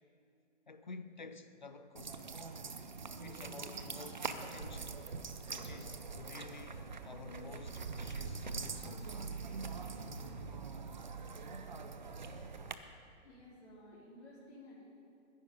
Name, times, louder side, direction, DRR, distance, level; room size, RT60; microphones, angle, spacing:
voice 1, 0.7-2.2 3.2-5.1 5.5-9.2, left 3 dB, 40° left, 0.4 m, -51 dB
sound 1, 2.0-12.7, right 4 dB, 40° right, 0.4 m, -43 dB
voice 2, 13.2-14.8, left 1 dB, 55° left, 3.6 m, -54 dB
13.5 x 10.5 x 5.3 m
hypercardioid pair, 175°, 38 cm